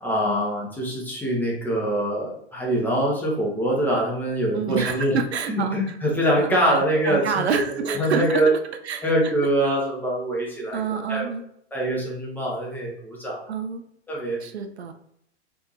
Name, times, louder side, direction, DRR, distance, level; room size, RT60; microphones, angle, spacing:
voice 1, 0.0-5.2 5.5-8.5 9.0-11.3 11.7-13.5 14.1-14.4, right 1 dB, 5° left, -4 dB, 0.8 m, -24 dB
voice 2, 4.5-5.8 6.4-8.6 8.8-9.1 10.7-11.4 13.5-13.8 14.4-14.9, right 6 dB, 70° right, 7 dB, 0.5 m, -27 dB
3.4 x 2.6 x 3.0 m, 0.72 s
figure-of-eight pair, 95°, 34 cm